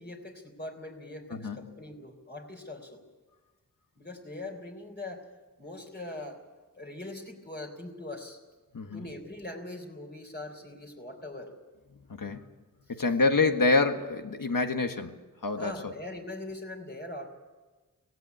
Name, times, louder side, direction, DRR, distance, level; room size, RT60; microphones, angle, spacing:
voice 1, 0.0-3.0 4.0-5.3 5.6-6.4 6.7-8.4 8.9-11.5 12.9-13.0 15.6-17.3, left 2 dB, 30° left, 1 dB, 3.7 m, -41 dB
voice 2, 1.3-1.6 8.7-9.0 12.2-12.4 12.9-15.9, left 3 dB, 75° left, 6 dB, 1.7 m, -27 dB
17.5 x 17.0 x 9.3 m, 1.3 s
wide cardioid pair, 75°, 34 cm